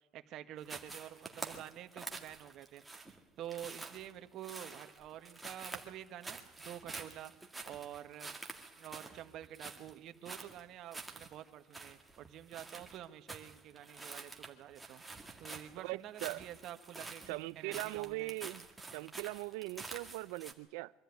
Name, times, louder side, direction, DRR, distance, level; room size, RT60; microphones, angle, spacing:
voice 1, 0.1-2.8 3.4-7.3 7.6-8.3 8.8-15.0 15.4-18.4, right 11 dB, 50° right, 1.5 m, -48 dB
sound 1, 0.6-20.5, right 3 dB, 5° right, 2.1 m, -48 dB
voice 2, 15.8-16.4 17.3-18.6 18.9-20.9, right 22 dB, 80° right, 0.7 m, -40 dB
24.0 x 13.5 x 9.4 m
cardioid pair, 145°, 0 cm